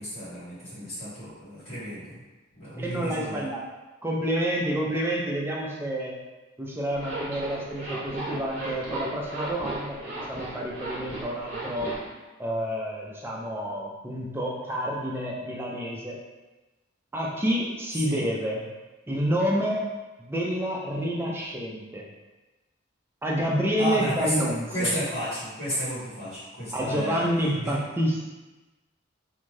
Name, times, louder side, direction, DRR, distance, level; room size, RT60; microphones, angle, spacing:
voice 1, 0.0-2.2 2.5-3.5 17.9-18.2 23.8-27.3 27.6-27.7, equal, 75° left, -11 dB, 1.4 m, -32 dB
voice 2, 2.8-3.6 4.0-6.2 6.6-11.9 12.4-16.2 17.1-18.6 19.1-19.9 20.2-22.0 23.2-24.9 26.7-28.2, equal, 10° right, -3 dB, 0.4 m, -28 dB
Zipper (clothing), 6.9-12.1, right 2 dB, 35° right, 0.8 m, -35 dB
2.6 x 2.3 x 3.2 m, 1.1 s
head